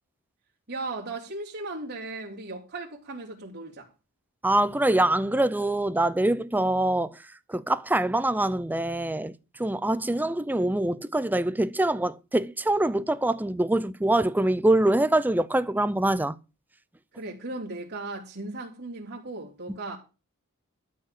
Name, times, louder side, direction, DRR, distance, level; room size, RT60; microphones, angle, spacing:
voice 1, 0.7-3.9 10.1-10.2 17.1-20.0, right 2 dB, 50° right, 3.4 m, -37 dB
voice 2, 4.4-7.2 7.5-9.3 9.6-16.4, right 1 dB, 10° right, 0.5 m, -24 dB
13.0 x 5.5 x 7.5 m
head